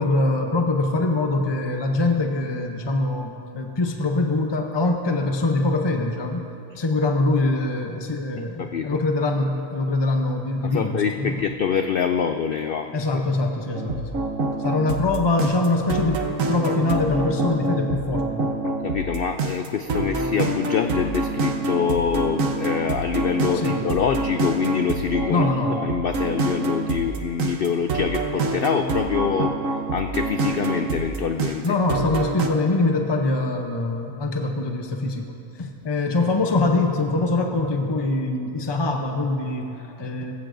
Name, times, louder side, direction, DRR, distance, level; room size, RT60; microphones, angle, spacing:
voice 1, 0.0-6.4 6.7-11.3 12.9-14.2 14.5-16.2 16.5-18.4 23.5-23.8 25.3-25.7 31.6-40.3, left 2 dB, 30° left, 3 dB, 0.5 m, -23 dB
voice 2, 8.6-9.0 10.6-13.2 18.6-25.4 25.8-31.7, left 7 dB, 85° left, 6 dB, 0.5 m, -25 dB
sound 1, 13.7-32.5, right 2 dB, 65° right, 1.3 m, -26 dB
21.5 x 15.0 x 2.6 m, 2.8 s
omnidirectional pair, 1.5 m